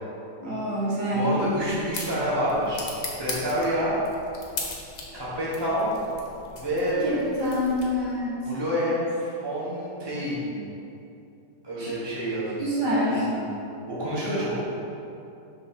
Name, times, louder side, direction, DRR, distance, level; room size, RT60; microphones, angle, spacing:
voice 1, 0.4-1.3 7.0-8.4 11.8-11.9 12.6-13.3, equal, 70° right, -7 dB, 2.1 m, -26 dB
voice 2, 1.1-2.8 3.2-3.9 5.1-6.1 6.5-7.0 8.4-10.7 11.6-12.6 13.1-13.5 13.9-14.6, equal, 15° right, -9 dB, 1.4 m, -28 dB
sound 1, 1.3-8.2, left 3 dB, 50° left, 1.2 m, -39 dB
5.8 x 3.6 x 5.8 m, 2.7 s
omnidirectional pair, 1.9 m